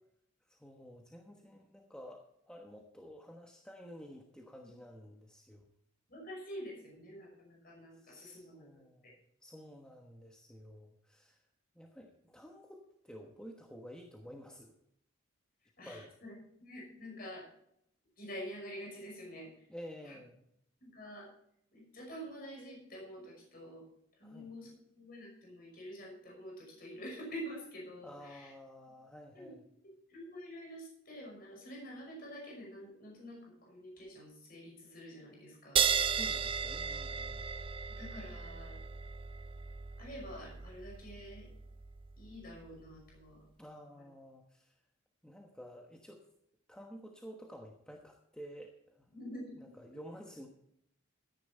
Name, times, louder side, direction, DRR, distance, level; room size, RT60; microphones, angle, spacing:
voice 1, 0.4-5.7 7.9-11.5 11.7-14.8 15.8-16.1 19.7-20.4 24.2-24.6 28.0-29.7 36.1-37.5 43.6-44.8 45.2-46.2 46.7-49.1 49.6-50.5, equal, 5° left, 1 dB, 1.1 m, -51 dB
voice 2, 6.1-8.7 9.0-9.1 15.8-16.3 16.6-17.4 18.2-19.7 20.0-20.2 20.8-21.3 21.7-23.8 24.2-28.5 29.3-29.6 30.1-35.9 38.0-38.8 40.0-41.5 42.2-43.5 49.1-49.6, equal, 45° left, -1 dB, 5.7 m, -47 dB
sound 1, 35.8-42.7, right 7 dB, 25° right, 0.4 m, -36 dB
13.5 x 10.5 x 4.3 m, 0.73 s
head